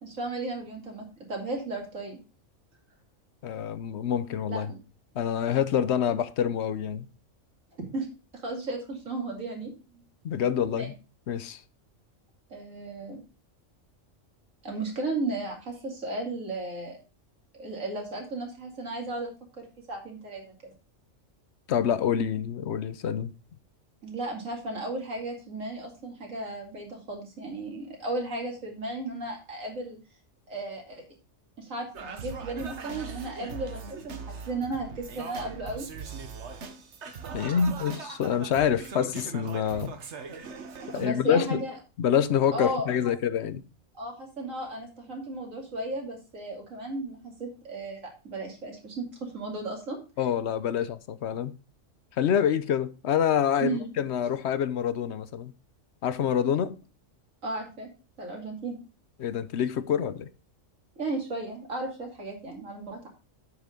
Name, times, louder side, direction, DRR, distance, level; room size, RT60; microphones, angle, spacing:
voice 1, 0.0-2.2 4.5-4.8 7.8-8.1 8.4-10.0 10.7-10.9 12.5-13.2 14.6-17.0 17.5-20.7 24.0-30.0 30.5-31.0 31.6-35.9 37.3-37.7 40.9-41.8 42.5-42.9 43.9-50.0 53.6-53.9 57.4-57.9 58.2-58.8 61.0-63.1, right 2 dB, 85° right, 2.9 m, -35 dB
voice 2, 3.4-4.7 5.1-7.1 10.2-10.9 11.3-11.6 21.7-23.3 37.3-40.0 40.9-41.6 42.0-43.6 50.2-51.6 52.2-55.5 56.0-56.8 59.2-60.3, left 8 dB, 65° left, 0.9 m, -26 dB
Singing, 31.9-41.1, right 5 dB, 60° right, 1.3 m, -40 dB
8.2 x 5.9 x 5.0 m
omnidirectional pair, 1.3 m